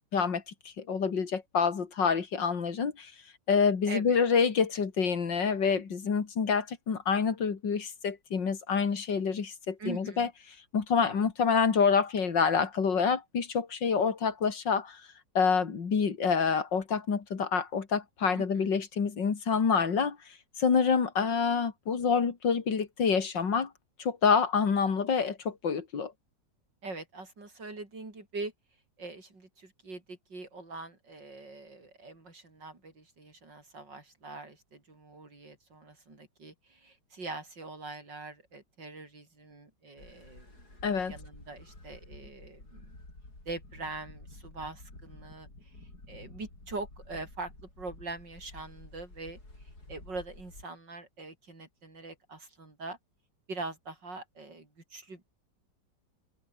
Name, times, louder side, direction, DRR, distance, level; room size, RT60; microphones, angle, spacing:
voice 1, 0.1-3.1 3.5-10.3 10.7-15.0 15.3-20.2 20.6-23.7 24.0-26.1 40.8-41.1, left 6 dB, 90° left, 3.1 m, -27 dB
voice 2, 3.9-4.2 9.8-10.3 18.3-18.8 26.8-28.5 29.0-40.7 41.0-43.0 43.5-45.7 46.1-49.4 49.9-53.0 53.5-55.2, right 3 dB, 80° right, 6.2 m, -43 dB
sound 1, 40.0-50.6, left 2 dB, 60° left, 8.4 m, -51 dB
omnidirectional pair, 1.9 m